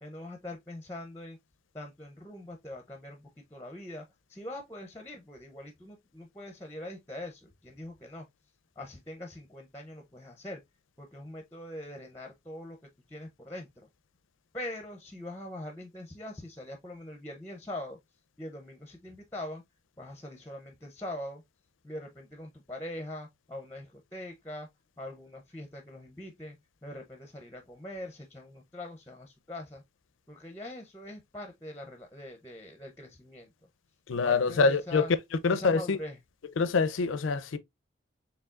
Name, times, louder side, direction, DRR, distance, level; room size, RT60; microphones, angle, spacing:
voice 1, 0.0-1.4 1.7-8.2 8.8-10.6 11.0-12.8 13.1-13.9 14.5-18.0 18.4-19.6 20.0-21.4 21.8-24.7 25.0-26.6 26.8-29.8 30.3-33.5 34.2-35.1 35.5-36.2, left 1 dB, 10° left, 0.5 m, -42 dB
voice 2, 34.1-35.0 35.4-36.0 36.6-37.6, left 4 dB, 85° left, 0.5 m, -25 dB
4.6 x 3.4 x 2.3 m
head